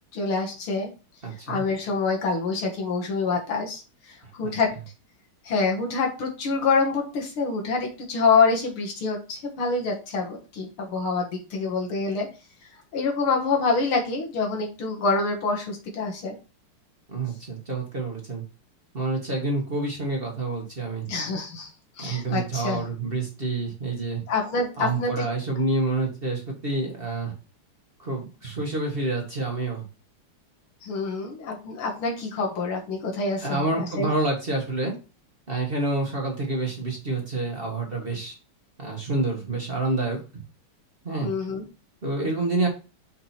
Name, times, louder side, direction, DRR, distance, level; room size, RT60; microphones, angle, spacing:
voice 1, 0.1-0.9 1.5-4.7 5.4-12.3 12.9-16.4 21.1-21.7 22.0-22.8 24.3-25.3 30.8-34.1 41.2-41.6, left 4 dB, 75° left, 2 dB, 2.4 m, -26 dB
voice 2, 1.2-1.6 4.4-4.5 17.1-18.4 18.9-21.1 22.0-24.2 24.8-27.3 28.0-29.8 33.4-34.9 35.5-38.3 38.8-40.2 41.0-41.3 42.0-42.7, right 2 dB, 30° right, -1 dB, 1.6 m, -28 dB
5.9 x 5.0 x 4.4 m, 0.32 s
omnidirectional pair, 2.4 m